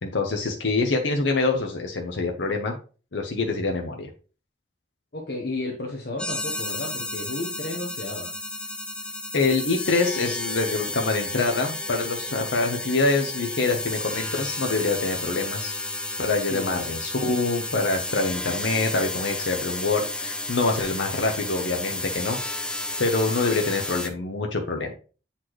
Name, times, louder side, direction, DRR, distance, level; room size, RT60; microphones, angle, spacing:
voice 1, 0.0-2.8 3.1-4.1 9.3-15.7 16.2-22.4 23.0-24.9, left 3 dB, 85° left, 2 dB, 0.8 m, -25 dB
voice 2, 5.1-8.3 16.5-16.8, left 2 dB, 55° left, -1 dB, 1.0 m, -33 dB
sound 1, 6.2-24.1, left 2 dB, 5° left, 0.4 m, -32 dB
7.8 x 4.2 x 3.1 m, 0.36 s
head